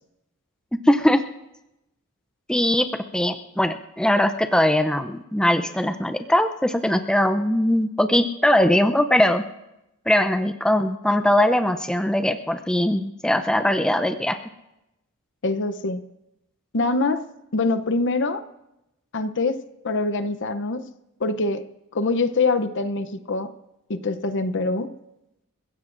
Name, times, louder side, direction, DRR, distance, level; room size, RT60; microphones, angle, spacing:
voice 1, 0.9-1.2 2.5-2.9 3.1-9.4 10.1-14.4, left 1 dB, 5° left, 7 dB, 0.5 m, -20 dB
voice 2, 15.4-16.0 16.7-17.2 17.5-18.4 19.1-20.9 21.2-21.6 21.9-23.5 23.9-24.9, left 3 dB, 55° left, 12 dB, 0.7 m, -24 dB
28.5 x 15.5 x 2.6 m, 0.90 s
head